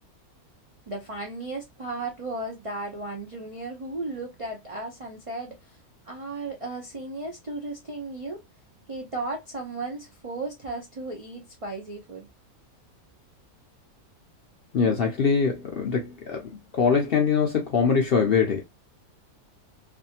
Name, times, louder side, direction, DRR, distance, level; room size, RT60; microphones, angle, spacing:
voice 1, 0.9-5.8 6.1-8.4 8.9-12.3, right 2 dB, 60° right, 0.3 m, -35 dB
voice 2, 14.7-18.6, left 5 dB, 60° left, 0.6 m, -23 dB
2.6 x 2.4 x 2.7 m
omnidirectional pair, 1.5 m